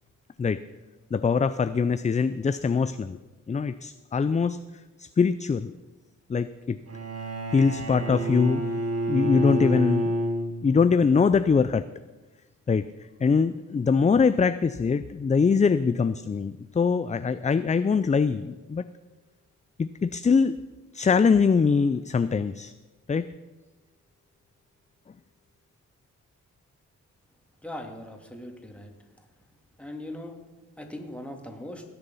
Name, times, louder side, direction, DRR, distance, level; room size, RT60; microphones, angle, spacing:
voice 1, 1.1-3.2 3.5-4.6 5.0-5.7 6.3-6.8 7.5-8.6 9.1-10.1 10.6-11.9 12.7-12.8 13.2-18.8 19.8-20.6 20.9-22.7 23.1-23.3, left 5 dB, 25° left, 13 dB, 0.4 m, -23 dB
Bowed string instrument, 6.9-11.0, right 1 dB, 50° right, 1.6 m, -29 dB
voice 2, 27.6-28.9 29.8-30.3 30.8-31.8, left 1 dB, 5° left, 2 dB, 2.5 m, -39 dB
18.5 x 7.0 x 5.5 m, 1.2 s
cardioid pair, 60°, 32 cm